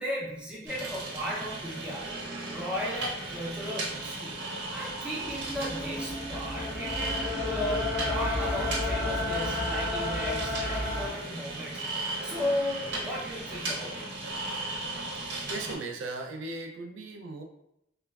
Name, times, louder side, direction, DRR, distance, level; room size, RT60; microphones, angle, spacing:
voice 1, 0.0-2.1 2.5-11.8 12.2-14.1, left 1 dB, 5° right, -6 dB, 0.5 m, -35 dB
sound 1, 0.7-15.8, right 2 dB, 55° right, 0.8 m, -36 dB
sound 2, 5.2-11.1, left 2 dB, 60° left, 0.8 m, -32 dB
voice 2, 15.2-17.4, right 3 dB, 75° right, 2 dB, 0.3 m, -38 dB
2.9 x 2.2 x 2.2 m, 0.80 s
head